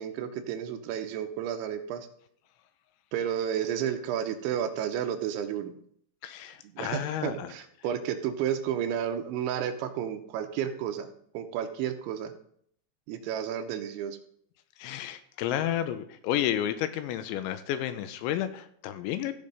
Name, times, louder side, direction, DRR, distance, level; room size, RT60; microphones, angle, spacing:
voice 1, 0.0-2.1 3.1-5.7 6.8-11.1 11.3-12.3 13.1-14.2, right 9 dB, 80° right, 7 dB, 3.1 m, -32 dB
voice 2, 6.2-7.5 14.8-19.3, left 11 dB, 85° left, 11 dB, 2.9 m, -31 dB
15.5 x 5.2 x 5.4 m, 0.65 s
omnidirectional pair, 5.5 m